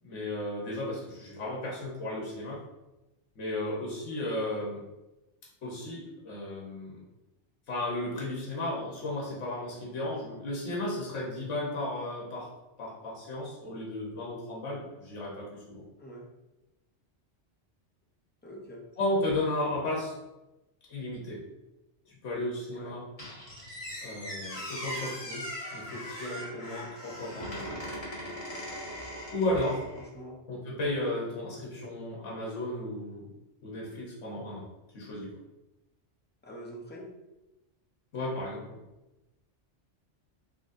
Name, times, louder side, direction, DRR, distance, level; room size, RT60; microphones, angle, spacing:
voice 1, 0.0-2.6 3.3-4.8 5.6-7.0 7.7-12.5 12.8-15.8 19.0-20.1 20.9-21.4 22.1-23.0 24.0-27.7 29.3-29.9 30.5-33.3 33.6-34.6 34.9-35.3 38.1-38.8, left 1 dB, 80° left, -4 dB, 1.3 m, -34 dB
voice 2, 18.4-18.8 22.7-23.0 29.9-30.4 36.4-37.1, right 1 dB, 15° left, -3 dB, 0.4 m, -45 dB
Squeak, 23.2-30.1, equal, 30° left, 1.3 m, -40 dB
3.9 x 3.2 x 2.5 m, 1.0 s
omnidirectional pair, 1.2 m